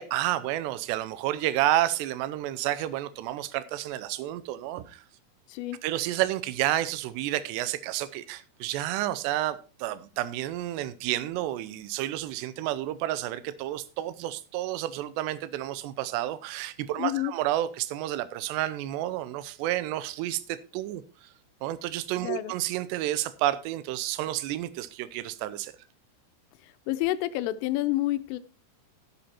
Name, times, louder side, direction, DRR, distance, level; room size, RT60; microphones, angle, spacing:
voice 1, 0.0-5.0 5.8-21.0 21.6-25.7, right 14 dB, 85° right, 2.4 m, -30 dB
voice 2, 17.0-17.3 22.2-22.5 26.6-28.4, left 16 dB, 85° left, 3.1 m, -29 dB
12.5 x 8.8 x 4.3 m
omnidirectional pair, 5.8 m